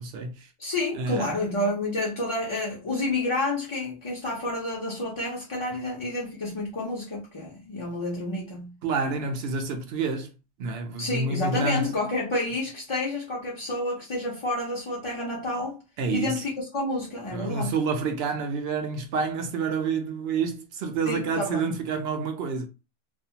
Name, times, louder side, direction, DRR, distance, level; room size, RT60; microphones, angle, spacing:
voice 1, 0.0-0.5 0.9-1.3 8.8-10.3 10.6-11.9 16.0-16.4 17.3-22.7, right 4 dB, 65° right, 0.7 m, -28 dB
voice 2, 0.6-8.7 11.0-15.8 16.1-17.7 21.0-21.8, left 2 dB, 40° left, 0.4 m, -29 dB
2.5 x 2.3 x 2.7 m
omnidirectional pair, 1.3 m